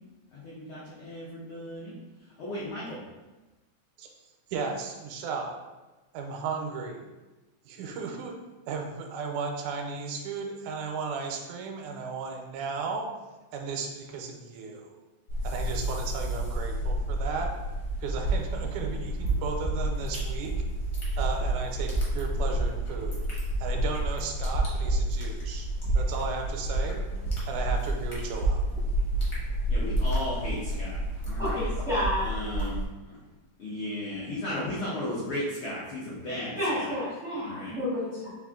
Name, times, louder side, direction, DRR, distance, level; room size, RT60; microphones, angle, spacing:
voice 1, 0.3-1.9 2.4-3.0 29.7-31.0 31.2-31.6 32.2-32.8 33.1-33.2 33.6-37.0 37.3-37.8, left 1 dB, 85° left, -7 dB, 1.1 m, -35 dB
voice 2, 4.5-5.6 6.1-7.1 7.7-8.4 8.7-13.1 13.5-14.9 15.4-17.5 18.0-20.6 21.2-23.2 23.6-25.7 26.0-27.0 27.5-28.6, right 4 dB, 85° right, 3 dB, 2.0 m, -35 dB
sound 1, 15.3-32.8, right 1 dB, 60° left, 1.0 m, -29 dB
voice 3, 31.4-32.3 36.5-38.3, left 1 dB, 70° right, -11 dB, 0.6 m, -30 dB
4.8 x 2.4 x 3.6 m, 1.1 s
omnidirectional pair, 3.5 m